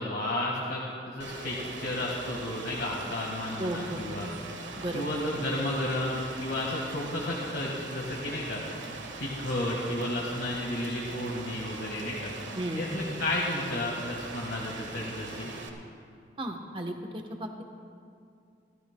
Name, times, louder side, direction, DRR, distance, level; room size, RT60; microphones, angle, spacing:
voice 1, 0.0-4.3 4.9-8.6 9.2-12.3 12.7-15.5, left 1 dB, 60° left, -3 dB, 1.6 m, -32 dB
Rain, 1.2-15.7, right 3 dB, 85° right, 1.3 m, -41 dB
voice 2, 3.6-4.4 4.8-5.0 12.5-13.2 16.4-17.0 17.4-17.6, right 1 dB, 25° right, 4 dB, 1.0 m, -34 dB
27.0 x 13.5 x 2.2 m, 2.4 s
head